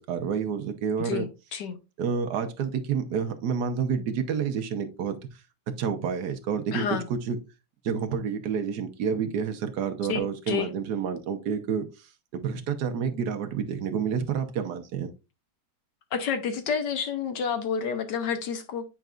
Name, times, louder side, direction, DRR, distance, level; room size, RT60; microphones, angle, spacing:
voice 1, 0.0-1.3 2.0-5.4 5.7-7.4 7.8-15.1, right 6 dB, 60° right, 1.2 m, -29 dB
voice 2, 1.0-1.8 6.7-7.1 10.1-10.7 16.1-18.8, left 7 dB, 65° left, 1.3 m, -29 dB
9.1 x 4.6 x 2.4 m
omnidirectional pair, 2.3 m